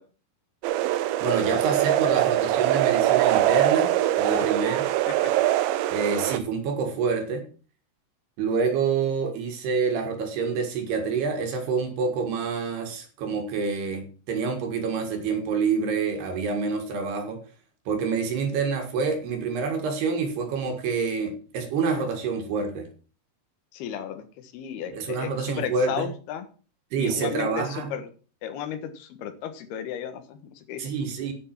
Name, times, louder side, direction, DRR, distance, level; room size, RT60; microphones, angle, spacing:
sound 1, 0.6-6.4, right 14 dB, 80° right, 2.9 m, -23 dB
voice 1, 1.2-4.9 5.9-7.4 8.4-17.4 17.9-22.9 24.9-26.1 26.9-27.9 30.8-31.3, right 5 dB, 65° right, 4 dB, 3.7 m, -27 dB
voice 2, 23.7-26.5 27.0-28.1 28.4-30.9, left 9 dB, 70° left, 7 dB, 3.1 m, -34 dB
12.0 x 6.3 x 6.0 m, 0.38 s
omnidirectional pair, 5.2 m